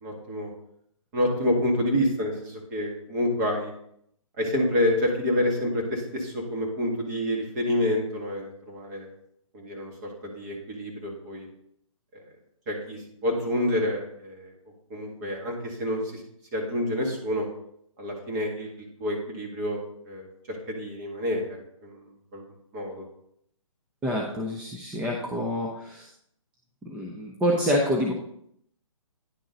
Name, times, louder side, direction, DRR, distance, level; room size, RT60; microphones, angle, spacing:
voice 1, 0.0-0.5 1.1-3.7 4.4-9.1 9.5-11.5 12.1-12.2 12.7-14.5 14.9-16.2 16.5-17.5 18.0-19.8 20.1-22.0 22.3-22.4 22.7-23.1, left 1 dB, 30° right, 0 dB, 1.9 m, -28 dB
voice 2, 24.0-26.1 26.9-28.1, equal, 5° right, -1 dB, 0.4 m, -27 dB
10.0 x 3.8 x 3.9 m, 0.71 s
hypercardioid pair, 145°, 18 cm